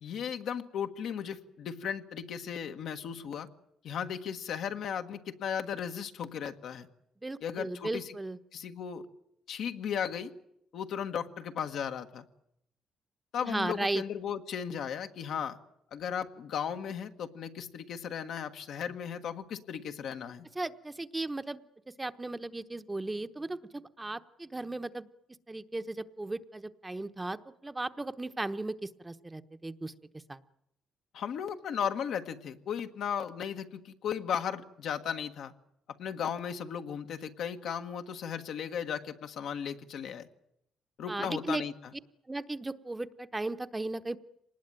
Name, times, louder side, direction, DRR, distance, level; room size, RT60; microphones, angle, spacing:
voice 1, 0.0-3.5 3.8-6.9 7.4-8.1 8.5-9.0 9.5-10.3 10.7-12.2 13.3-15.6 15.9-20.5 31.1-35.5 36.0-40.3 41.0-41.7, left 8 dB, 75° left, 6 dB, 1.5 m, -36 dB
voice 2, 7.2-8.4 13.4-14.0 20.5-23.6 24.0-25.1 25.5-29.9 30.3-30.4 41.1-41.6 42.3-44.2, right 2 dB, 15° right, 10 dB, 1.0 m, -36 dB
24.5 x 19.5 x 9.1 m, 0.79 s
cardioid pair, 90°, 0 cm